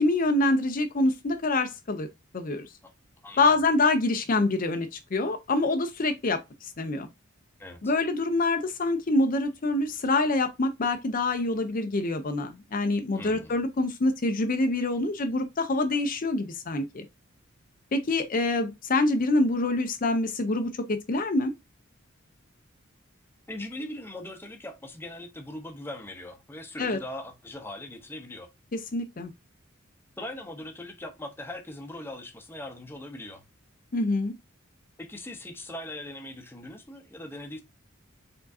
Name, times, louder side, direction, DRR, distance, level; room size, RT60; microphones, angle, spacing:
voice 1, 0.0-2.1 2.3-2.7 3.4-7.1 7.8-17.1 17.9-21.5 26.8-27.0 28.7-29.3 33.9-34.3, left 2 dB, 45° left, 0.6 m, -26 dB
voice 2, 7.6-7.9 13.1-13.6 23.5-28.5 30.2-33.4 35.0-37.6, left 1 dB, 10° left, 0.8 m, -40 dB
4.7 x 3.7 x 2.6 m
head